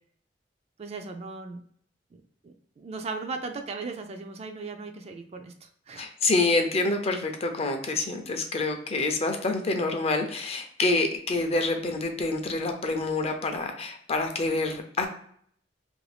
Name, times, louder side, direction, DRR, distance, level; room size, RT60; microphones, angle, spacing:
voice 1, 0.8-1.6 2.1-6.1, right 4 dB, 35° right, 5 dB, 0.3 m, -37 dB
voice 2, 6.0-15.1, left 3 dB, 35° left, 5 dB, 0.5 m, -27 dB
2.6 x 2.6 x 3.3 m, 0.63 s
head